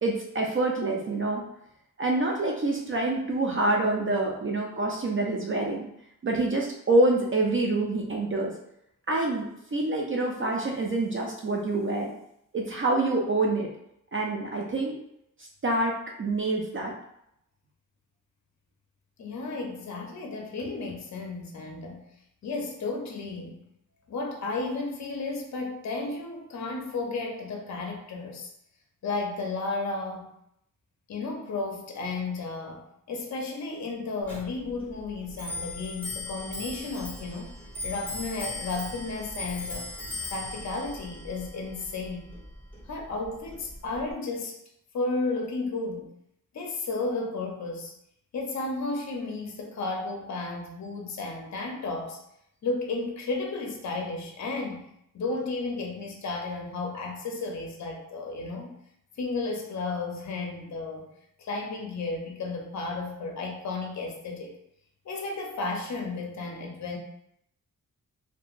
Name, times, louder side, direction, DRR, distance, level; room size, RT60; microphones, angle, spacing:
voice 1, 0.0-1.4 2.0-5.9 6.2-8.5 9.1-12.1 12.5-13.7 14.1-15.0 15.6-16.9, right 2 dB, 40° right, -1 dB, 0.4 m, -26 dB
voice 2, 19.2-22.1 22.4-23.6 24.1-28.5 29.0-30.3 31.1-37.5 37.8-39.9 40.3-42.3 42.9-44.6 44.9-46.1 46.5-47.9 48.3-52.2 52.6-54.9 55.1-58.8 59.2-61.1 61.4-64.5 65.0-67.0, left 3 dB, 55° left, 2 dB, 0.6 m, -33 dB
Clock, 34.2-44.1, left 2 dB, 5° left, 1.3 m, -39 dB
2.8 x 2.2 x 2.4 m, 0.76 s
wide cardioid pair, 80°, 34 cm